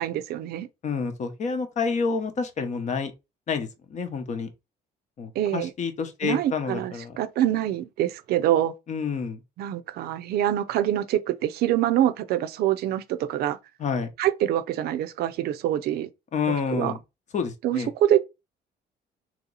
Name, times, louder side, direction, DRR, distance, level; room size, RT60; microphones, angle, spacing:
voice 1, 0.0-0.7 5.4-5.7 6.2-8.7 9.6-13.6 14.2-16.1 16.7-16.9 17.6-18.2, right 12 dB, 70° right, 0.5 m, -25 dB
voice 2, 0.8-3.1 3.5-4.5 5.2-7.2 8.9-9.4 13.8-14.1 16.3-17.0 17.3-17.9, left 5 dB, 45° left, 0.9 m, -28 dB
3.0 x 2.8 x 3.9 m
cardioid pair, 110°, 17 cm